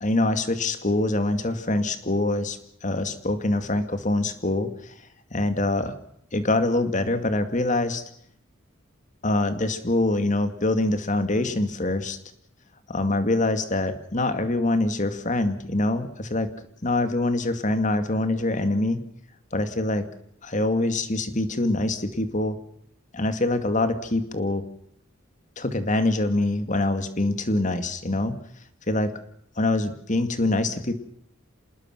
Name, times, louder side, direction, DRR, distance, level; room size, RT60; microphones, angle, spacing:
voice 1, 0.0-4.9 5.3-5.9 6.3-8.0 9.2-12.2 12.9-16.5 16.8-19.0 19.5-20.1 20.4-22.6 23.1-24.6 25.6-28.3 28.9-29.1 29.6-31.0, left 2 dB, 40° left, 9 dB, 2.2 m, -24 dB
27.0 x 20.5 x 6.1 m, 0.70 s
head